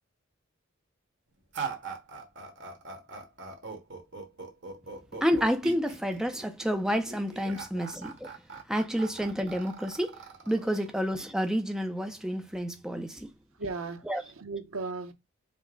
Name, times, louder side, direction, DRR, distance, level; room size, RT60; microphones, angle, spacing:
sound 1, 1.5-11.5, right 5 dB, 55° right, 1.2 m, -41 dB
voice 1, 5.2-8.3 8.7-10.2 10.5-13.3 14.1-14.2, equal, 5° right, 0.4 m, -29 dB
voice 2, 13.6-15.1, right 3 dB, 85° right, 0.8 m, -36 dB
5.3 x 2.0 x 3.7 m
head